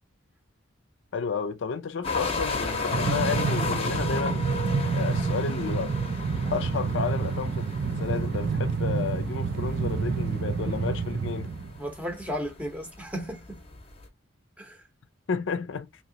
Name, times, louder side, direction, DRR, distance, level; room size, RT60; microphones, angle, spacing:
voice 1, 1.1-4.4 4.9-5.9 6.5-7.7 8.0-11.5 15.3-15.9, left 5 dB, 60° left, 0.5 m, -31 dB
sound 1, 2.0-14.1, left 3 dB, 30° left, 0.8 m, -35 dB
Train, 2.9-11.8, right 5 dB, 50° right, 0.4 m, -28 dB
voice 2, 11.8-13.6 14.6-14.8, equal, 5° right, 0.8 m, -34 dB
3.0 x 2.8 x 2.7 m
head